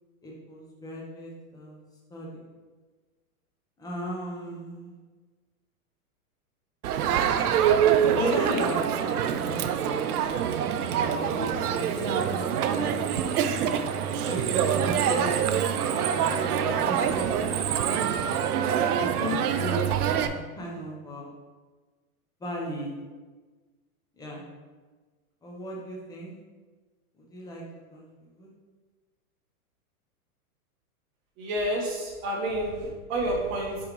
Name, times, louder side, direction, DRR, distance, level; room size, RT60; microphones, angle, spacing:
voice 1, 0.2-1.8 2.1-2.4 3.8-5.0 8.1-10.1 10.9-14.0 14.2-15.3 15.9-18.4 19.0-19.8 20.1-21.3 22.4-22.9 24.2-24.4 25.4-26.3 27.2-27.6 27.9-28.5, equal, 10° left, -3 dB, 0.9 m, -36 dB
Crowd, 6.8-20.3, right 8 dB, 85° right, 0.6 m, -25 dB
voice 2, 31.4-32.8 33.1-33.8, right 1 dB, 45° right, -3 dB, 1.9 m, -29 dB
8.8 x 3.5 x 3.1 m, 1.4 s
supercardioid pair, 150°, 44 cm